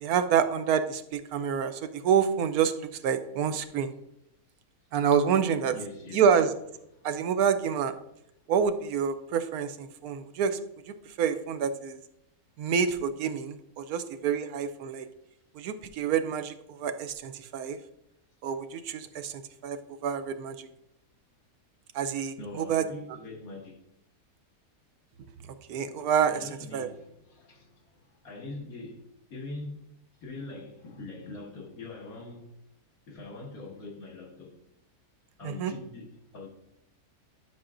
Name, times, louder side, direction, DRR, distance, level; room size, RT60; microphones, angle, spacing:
voice 1, 0.0-3.9 4.9-5.8 6.1-6.5 7.0-7.9 8.5-10.6 10.9-12.0 12.6-15.1 15.5-17.8 18.4-20.7 21.9-22.8 25.7-26.4 26.7-26.9 35.4-35.7, right 7 dB, 90° right, 1.1 m, -27 dB
voice 2, 5.7-6.3 6.9-7.1 19.1-19.2 22.4-23.8 26.3-29.9 30.2-32.5 33.1-34.6 35.4-36.5, left 2 dB, 70° left, 2.0 m, -43 dB
10.5 x 5.7 x 2.5 m
omnidirectional pair, 1.6 m